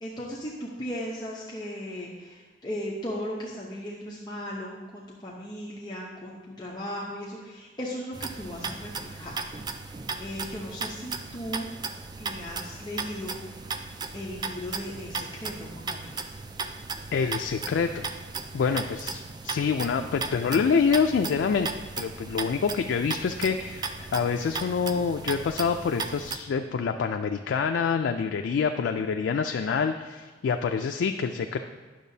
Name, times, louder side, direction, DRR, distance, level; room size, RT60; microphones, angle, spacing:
voice 1, 0.0-9.5 10.2-11.7 12.2-13.4 14.1-16.2, equal, 25° left, -5 dB, 0.7 m, -37 dB
sound 1, 8.1-26.4, right 4 dB, 25° right, 0.3 m, -36 dB
voice 2, 17.1-18.1 18.5-21.7 22.0-31.6, left 5 dB, 75° left, 5 dB, 0.3 m, -26 dB
10.0 x 6.6 x 2.7 m, 1.4 s
head